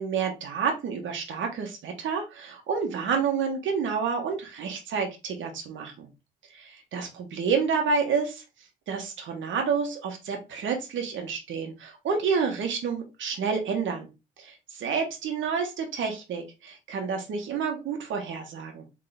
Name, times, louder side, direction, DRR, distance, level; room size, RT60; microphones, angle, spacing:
voice 1, 0.0-6.1 6.5-8.4 8.9-14.1 14.4-18.8, right 5 dB, 75° right, 3 dB, 1.4 m, -29 dB
4.0 x 3.7 x 3.5 m, 0.26 s
cardioid pair, 90°, 20 cm